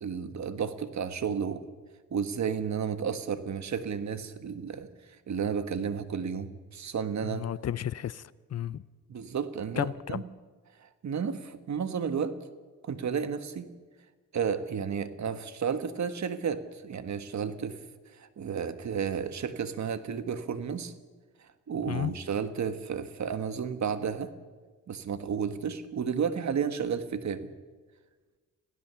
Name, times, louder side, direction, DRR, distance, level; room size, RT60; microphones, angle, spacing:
voice 1, 0.0-1.6 2.1-4.9 5.3-7.5 9.1-10.3 10.8-12.4 12.8-13.7 14.3-17.8 18.1-20.9 21.7-24.3 24.9-27.5, right 7 dB, 55° right, 1.5 m, -32 dB
voice 2, 7.2-8.2 8.5-8.8 9.8-10.2 21.9-22.1, left 10 dB, 50° left, 0.6 m, -32 dB
26.5 x 16.0 x 7.0 m
cardioid pair, 100°, 34 cm